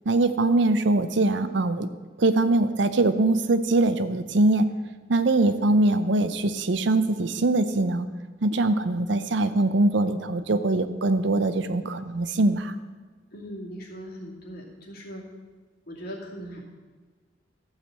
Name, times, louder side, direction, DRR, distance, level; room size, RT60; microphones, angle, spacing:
voice 1, 0.1-1.9 2.2-4.7 5.1-8.1 8.4-12.7, right 2 dB, 70° right, 11 dB, 0.6 m, -22 dB
voice 2, 13.3-15.3 15.9-16.6, equal, 55° left, -2 dB, 2.4 m, -39 dB
12.5 x 4.9 x 7.6 m, 1.4 s
head